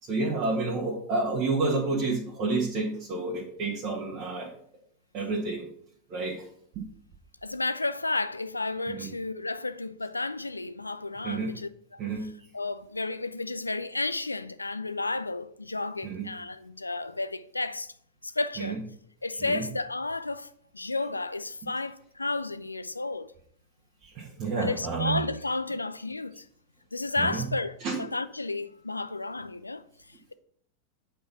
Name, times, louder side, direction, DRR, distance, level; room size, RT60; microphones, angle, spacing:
voice 1, 0.0-4.5 5.1-5.7 6.1-6.5 6.7-6.8 8.9-9.1 11.2-11.5 12.0-12.3 16.0-16.3 18.6-18.8 19.4-19.6 24.0-25.2 27.2-27.5 27.8-28.0, right 3 dB, 40° right, 1.7 m, -30 dB
voice 2, 7.4-12.0 12.5-17.9 18.2-18.8 19.2-20.5 20.7-23.3 24.5-26.5 26.9-29.8, left 3 dB, 80° left, 0.5 m, -32 dB
8.3 x 4.7 x 5.6 m
figure-of-eight pair, 90°, 0 cm